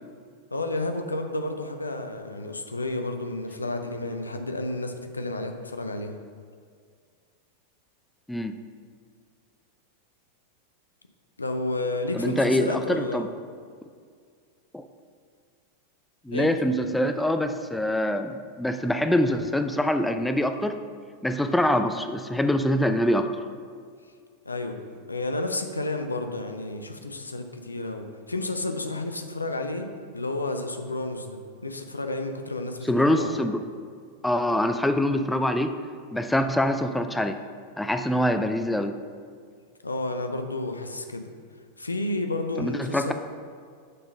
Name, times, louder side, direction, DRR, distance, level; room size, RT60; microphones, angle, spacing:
voice 1, 0.5-6.1 11.4-13.3 16.3-16.5 24.5-29.9 30.1-33.3 39.8-41.2 41.8-43.1, left 2 dB, 80° left, 6 dB, 0.5 m, -31 dB
voice 2, 12.1-13.3 14.7-14.9 16.3-20.8 21.2-23.3 32.8-33.6 34.2-35.8 36.1-37.4 37.8-39.0 42.6-43.1, left 1 dB, 5° left, 7 dB, 0.3 m, -24 dB
6.6 x 3.7 x 5.3 m, 2.1 s
figure-of-eight pair, 90°, 0 cm